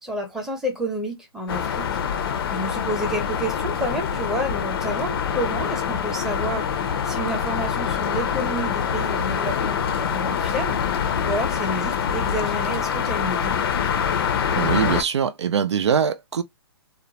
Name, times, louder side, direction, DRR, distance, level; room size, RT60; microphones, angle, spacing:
voice 1, 0.0-1.9 2.1-6.7 7.1-10.8 11.2-13.6, right 1 dB, 5° right, 0.7 m, -30 dB
sound 1, 1.5-15.0, left 7 dB, 60° left, 0.6 m, -25 dB
voice 2, 14.6-16.4, right 7 dB, 85° right, 0.5 m, -22 dB
2.4 x 2.1 x 2.8 m
hypercardioid pair, 150°, 14 cm